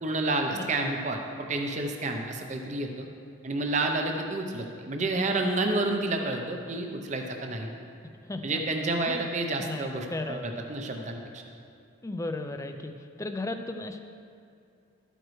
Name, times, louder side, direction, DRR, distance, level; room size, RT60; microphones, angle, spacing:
voice 1, 0.0-3.1 3.4-7.7 8.4-11.4, right 2 dB, 35° right, 3 dB, 0.7 m, -30 dB
voice 2, 0.5-1.0 8.2-8.6 9.1-9.2 9.6-10.4 12.0-14.0, left 2 dB, 15° left, 7 dB, 0.4 m, -35 dB
12.0 x 9.0 x 3.2 m, 2.5 s
head